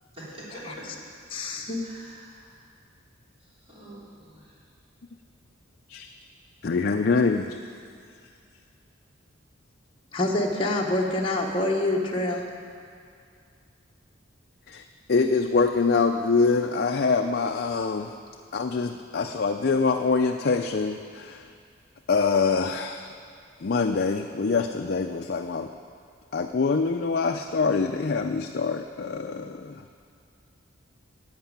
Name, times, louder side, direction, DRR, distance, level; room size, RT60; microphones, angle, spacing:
voice 1, 0.1-0.9 1.6-2.7 3.4-4.6, right 1 dB, 30° right, -8 dB, 3.6 m, -46 dB
voice 2, 1.3-1.8 10.1-12.5, left 1 dB, 25° left, -2 dB, 1.1 m, -26 dB
voice 3, 6.6-7.6 14.7-14.8 15.1-18.1 18.5-21.5 22.1-23.1 23.6-25.7 26.3-29.9, left 4 dB, 50° left, 4 dB, 0.4 m, -25 dB
11.5 x 8.1 x 8.8 m, 2.4 s
head